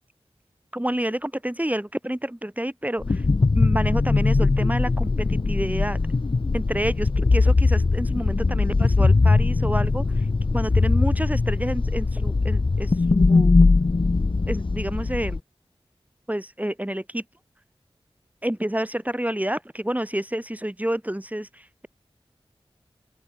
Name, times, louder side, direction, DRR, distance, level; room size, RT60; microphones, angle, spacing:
voice 1, 0.7-3.2 3.5-6.0 6.5-10.2 10.5-13.6 14.5-15.4 16.3-17.2 18.4-21.9, right 1 dB, 15° right, 3.5 m, -29 dB
sound 1, 3.0-15.4, left 3 dB, 55° left, 0.8 m, -20 dB
open air
wide cardioid pair, 40°, 11 cm